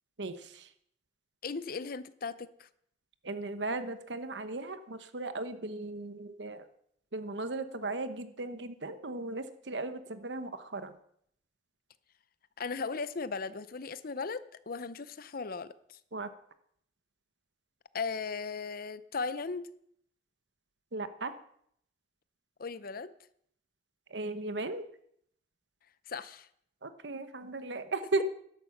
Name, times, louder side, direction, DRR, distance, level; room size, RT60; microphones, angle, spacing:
voice 1, 0.2-0.7 3.2-6.7 7.1-10.9 16.1-16.3 20.9-21.3 24.1-24.8 26.8-28.2, right 2 dB, 75° right, 11 dB, 1.1 m, -36 dB
voice 2, 1.4-2.7 12.6-16.0 17.9-19.7 22.6-23.1 26.1-26.5, left 4 dB, 55° left, 15 dB, 0.7 m, -37 dB
13.0 x 11.5 x 5.8 m, 0.69 s
head